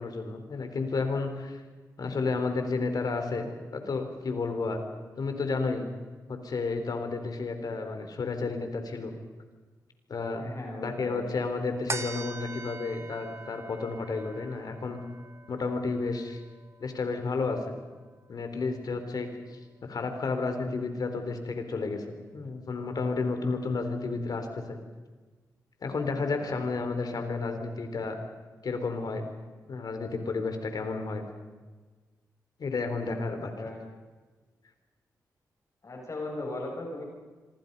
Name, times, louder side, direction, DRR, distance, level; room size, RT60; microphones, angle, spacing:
voice 1, 0.0-1.6 2.0-4.8 5.2-5.9 6.3-9.1 10.1-10.5 10.8-15.0 15.5-16.4 16.8-17.7 18.3-22.0 22.3-24.8 25.8-28.2 28.6-29.2 29.7-31.2 32.6-33.5, left 4 dB, 65° left, 6 dB, 4.2 m, -31 dB
voice 2, 10.4-11.3 26.1-26.6 33.3-33.8 35.8-37.0, left 2 dB, 50° left, 1 dB, 7.6 m, -38 dB
sound 1, 11.9-18.6 19.1-19.2, right 3 dB, 40° right, 2.2 m, -43 dB
26.0 x 25.5 x 5.6 m, 1.4 s
cardioid pair, 60°, 7 cm